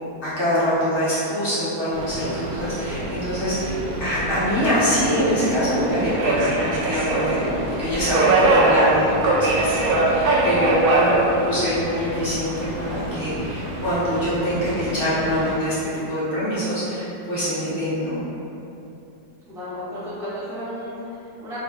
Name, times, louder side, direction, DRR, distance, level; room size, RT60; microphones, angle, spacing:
voice 1, 0.2-9.7 9.9-18.2, equal, 35° left, -12 dB, 1.2 m, -24 dB
Subway metro underground, 1.9-15.5, right 2 dB, 70° right, 1.0 m, -23 dB
voice 2, 10.8-11.4 19.5-21.6, equal, 5° right, -13 dB, 0.6 m, -34 dB
3.6 x 2.9 x 2.4 m, 2.9 s
omnidirectional pair, 1.8 m